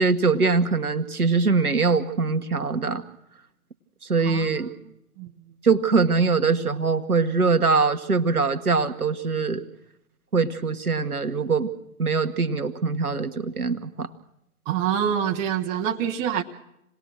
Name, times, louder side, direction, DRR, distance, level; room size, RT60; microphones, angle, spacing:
voice 1, 0.0-3.0 4.1-4.7 5.6-9.6 10.3-11.7 12.0-14.1, right 4 dB, 80° right, 9 dB, 1.4 m, -22 dB
voice 2, 14.7-16.4, right 9 dB, 15° right, 4 dB, 1.0 m, -25 dB
27.5 x 19.0 x 6.3 m, 0.82 s
figure-of-eight pair, 120°, 44 cm